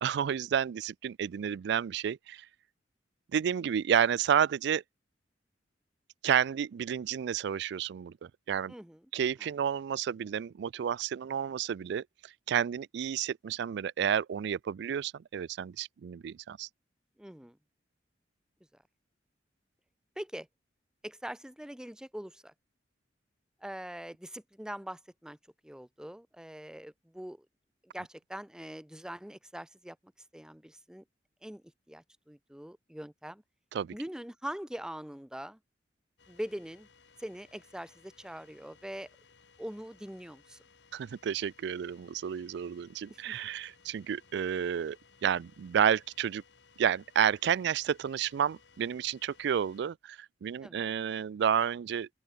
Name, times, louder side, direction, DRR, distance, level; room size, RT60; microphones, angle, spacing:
voice 1, 0.0-2.5 3.3-4.8 6.2-8.7 9.1-16.7 33.7-33.9 40.9-45.0 45.2-46.4 46.8-52.1, right 8 dB, 65° right, 0.3 m, -30 dB
voice 2, 8.7-9.0 9.4-9.5 17.2-17.6 20.2-20.5 21.0-22.5 23.6-25.4 25.6-27.5 27.9-30.0 30.3-31.0 31.4-33.4 33.9-35.6 36.3-36.9 37.2-39.1 39.6-40.6 43.1-43.4 50.6-50.9, equal, 5° right, 0.6 m, -43 dB
sound 1, 36.2-49.8, left 5 dB, 70° left, 2.0 m, -62 dB
open air
head